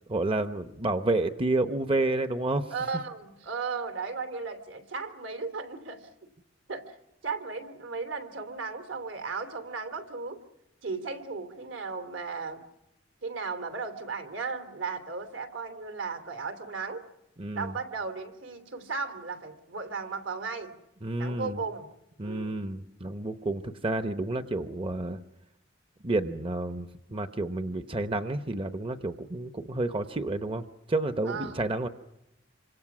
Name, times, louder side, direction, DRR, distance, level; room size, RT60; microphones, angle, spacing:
voice 1, 0.1-2.7 17.4-17.7 21.0-21.6 22.2-25.2 26.0-31.9, right 2 dB, 30° right, 9 dB, 0.9 m, -30 dB
voice 2, 2.7-6.1 6.7-7.0 7.2-10.4 10.8-12.6 13.2-17.1 17.5-20.7 21.2-21.9 22.2-22.6 31.3-31.6, right 4 dB, 70° right, 8 dB, 3.2 m, -35 dB
27.5 x 25.5 x 6.2 m, 0.91 s
head